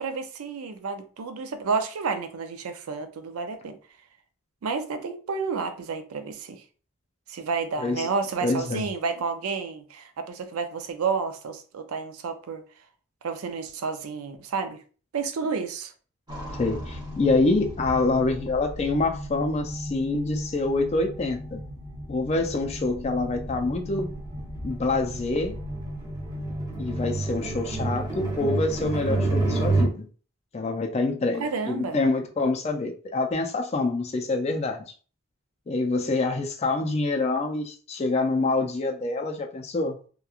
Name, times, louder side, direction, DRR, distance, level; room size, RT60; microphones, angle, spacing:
voice 1, 0.0-3.8 4.6-6.6 7.3-12.6 13.2-14.8 15.1-15.9 31.4-32.0, right 5 dB, 85° right, 0.4 m, -30 dB
voice 2, 8.4-8.8 16.6-21.6 22.1-24.1 24.6-25.6 26.8-30.1 30.5-34.8 35.7-40.0, left 3 dB, 30° left, 0.4 m, -26 dB
sound 1, 16.3-29.8, right 2 dB, 20° right, 0.7 m, -31 dB
2.9 x 2.2 x 2.3 m
head